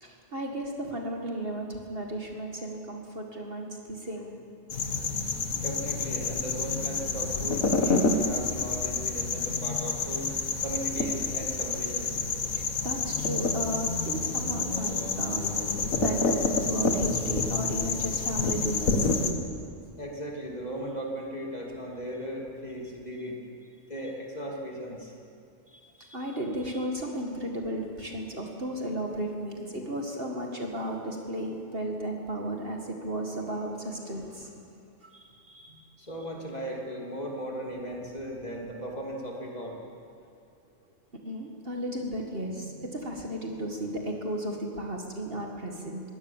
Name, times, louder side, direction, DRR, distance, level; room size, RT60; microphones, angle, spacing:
voice 1, 0.0-4.4 12.5-19.3 25.7-34.7 35.0-35.9 41.2-46.0, right 1 dB, 45° right, 1 dB, 2.2 m, -34 dB
sound 1, 4.7-19.3, left 4 dB, 80° left, 2.0 m, -28 dB
voice 2, 5.5-10.3 10.6-12.2 20.0-23.4 23.9-25.1 36.0-39.8, equal, 30° left, -1 dB, 3.1 m, -37 dB
21.5 x 17.0 x 7.3 m, 2.5 s
omnidirectional pair, 1.4 m